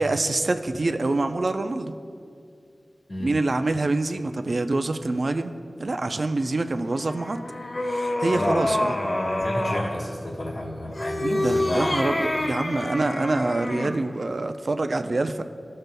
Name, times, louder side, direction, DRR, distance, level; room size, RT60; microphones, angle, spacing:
voice 1, 0.0-2.0 3.2-5.5 5.8-7.4 7.8-8.9 11.2-15.4, right 2 dB, 65° right, 8 dB, 0.4 m, -26 dB
voice 2, 3.1-3.4 8.3-11.9 12.3-12.6, left 1 dB, 70° left, -7 dB, 1.3 m, -31 dB
sound 1, 6.9-9.9 10.9-14.0, left 1 dB, 50° left, 0.8 m, -27 dB
17.0 x 6.5 x 2.2 m, 2.3 s
cardioid pair, 45°, 0 cm